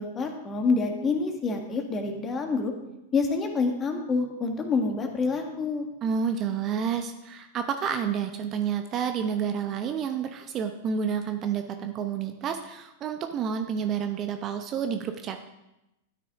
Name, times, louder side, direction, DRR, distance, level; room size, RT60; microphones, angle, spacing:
voice 1, 0.0-2.7 3.1-5.9, left 4 dB, 20° left, 4 dB, 1.7 m, -27 dB
voice 2, 6.0-15.4, right 7 dB, 30° right, 7 dB, 0.8 m, -29 dB
12.5 x 9.7 x 3.7 m, 0.90 s
figure-of-eight pair, 95°, 0 cm